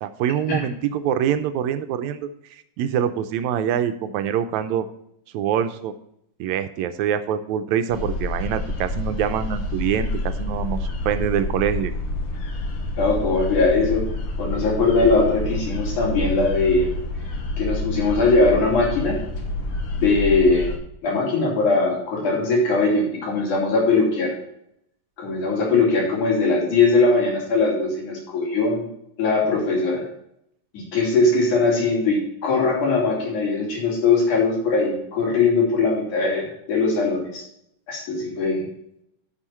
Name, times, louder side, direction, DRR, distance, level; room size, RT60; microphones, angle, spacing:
voice 1, 0.0-2.3 2.8-4.9 5.3-5.9 6.4-11.9, right 9 dB, 80° right, 10 dB, 1.9 m, -24 dB
sound 1, 7.9-20.8, left 2 dB, 55° left, 1.9 m, -28 dB
voice 2, 13.0-14.0 14.4-16.9 17.6-19.2 20.0-20.7 21.0-24.3 25.2-28.9 29.2-30.0 30.7-37.4 37.9-38.7, left 3 dB, 90° left, -2 dB, 4.2 m, -20 dB
9.9 x 6.4 x 4.3 m, 0.75 s
omnidirectional pair, 3.4 m